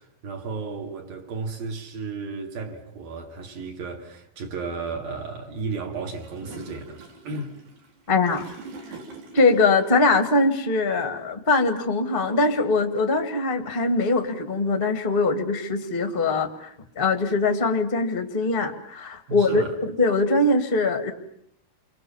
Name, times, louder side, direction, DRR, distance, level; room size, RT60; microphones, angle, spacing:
voice 1, 0.0-7.5 19.3-19.7, right 4 dB, 60° right, 3.9 m, -34 dB
Gurgling / Toilet flush, 6.2-9.9, right 3 dB, 80° right, 6.3 m, -44 dB
voice 2, 8.1-8.4 9.3-21.1, left 3 dB, 45° left, 0.7 m, -22 dB
28.5 x 24.5 x 7.1 m
omnidirectional pair, 4.7 m